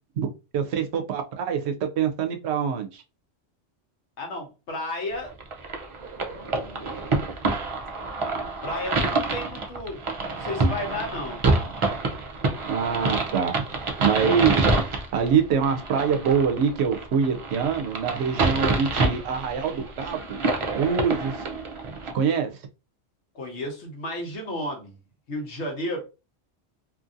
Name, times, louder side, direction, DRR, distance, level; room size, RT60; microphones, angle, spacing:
voice 1, 0.2-3.0 12.7-14.6 15.1-20.4 20.7-21.4 22.1-22.5, right 7 dB, 70° right, 0.8 m, -25 dB
voice 2, 4.2-5.3 6.3-7.2 8.6-11.5 23.3-25.0 25.3-26.0, left 1 dB, 75° left, 1.2 m, -33 dB
sound 1, 5.4-22.1, right 3 dB, 50° right, 0.3 m, -27 dB
2.8 x 2.6 x 2.5 m
omnidirectional pair, 1.2 m